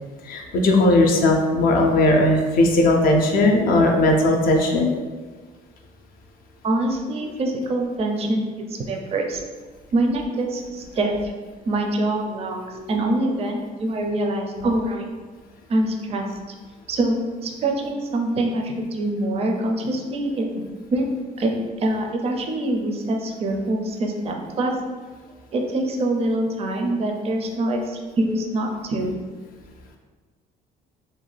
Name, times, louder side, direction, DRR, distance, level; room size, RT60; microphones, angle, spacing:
voice 1, 0.2-4.9 12.7-12.9 14.6-14.7, left 2 dB, 60° left, 1 dB, 0.4 m, -18 dB
voice 2, 6.6-9.4 9.9-11.3 11.7-12.6 12.9-15.1 15.7-16.4 16.9-20.5 20.9-21.1 21.4-21.5 21.8-24.8 25.5-29.1, right 1 dB, 35° right, 2 dB, 0.4 m, -24 dB
2.5 x 2.2 x 3.2 m, 1.4 s
cardioid pair, 110°, 17 cm